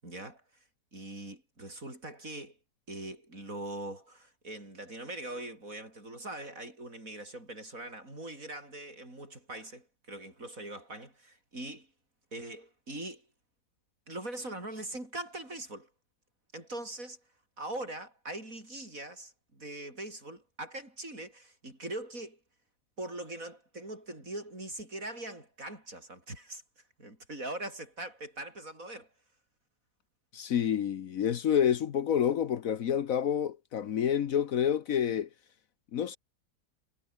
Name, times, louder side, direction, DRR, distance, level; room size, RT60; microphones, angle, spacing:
voice 1, 0.0-0.6 0.9-2.6 2.9-11.9 12.3-13.3 14.1-15.9 16.5-17.2 17.6-22.4 23.0-29.1, right 1 dB, 60° right, 8.3 m, -42 dB
voice 2, 30.3-35.3 35.9-36.2, left 9 dB, 65° left, 1.3 m, -28 dB
omnidirectional pair, 1.7 m